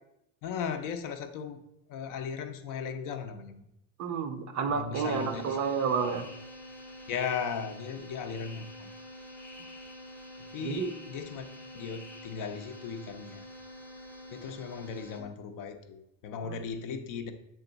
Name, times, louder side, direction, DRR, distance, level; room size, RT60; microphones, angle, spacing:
voice 1, 0.4-1.6 1.9-3.6 4.7-5.6 7.1-8.9 10.5-11.4 11.7-13.4 14.3-17.3, left 6 dB, 45° left, 8 dB, 0.5 m, -37 dB
voice 2, 4.0-6.3 10.6-10.9 16.4-16.6, right 6 dB, 35° right, 8 dB, 0.5 m, -30 dB
sound 1, 4.9-15.2, left 1 dB, 5° left, 0.7 m, -47 dB
7.7 x 3.4 x 3.9 m, 0.84 s
supercardioid pair, 130°, 49 cm